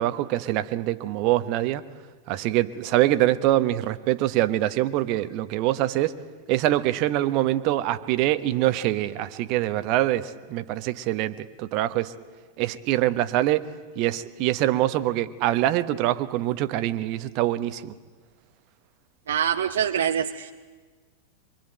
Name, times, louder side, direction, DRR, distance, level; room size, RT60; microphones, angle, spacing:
voice 1, 0.0-1.8 2.3-6.2 6.5-12.1 12.6-13.7 13.9-17.9, right 14 dB, 40° right, 11 dB, 1.3 m, -24 dB
voice 2, 19.3-20.5, right 9 dB, 65° right, 6 dB, 0.9 m, -25 dB
25.5 x 24.5 x 9.1 m, 1.4 s
figure-of-eight pair, 90°, 0 cm